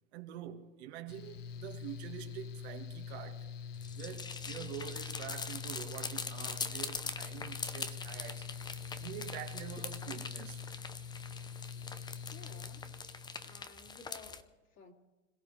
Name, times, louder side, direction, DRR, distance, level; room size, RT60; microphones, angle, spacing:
voice 1, 0.1-3.5 3.9-8.5 9.0-10.6, right 11 dB, 60° right, 1.8 m, -46 dB
Mechanical fan, 1.1-13.6, left 6 dB, 85° left, 1.2 m, -45 dB
sound 1, 3.7-14.4, left 5 dB, 10° left, 0.7 m, -43 dB
voice 2, 12.3-13.1 13.4-14.9, left 5 dB, 35° left, 2.8 m, -55 dB
26.5 x 16.0 x 3.3 m
hypercardioid pair, 125°, 37 cm